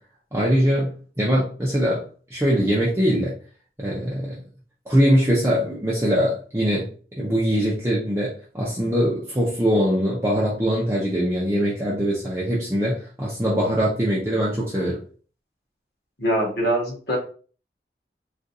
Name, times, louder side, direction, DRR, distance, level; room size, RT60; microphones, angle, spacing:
voice 1, 0.3-2.0 2.3-3.3 3.8-4.3 4.9-15.0, equal, 15° right, -6 dB, 0.6 m, -22 dB
voice 2, 16.2-17.2, right 1 dB, 70° left, -2 dB, 1.5 m, -23 dB
3.7 x 2.5 x 2.7 m, 0.41 s
head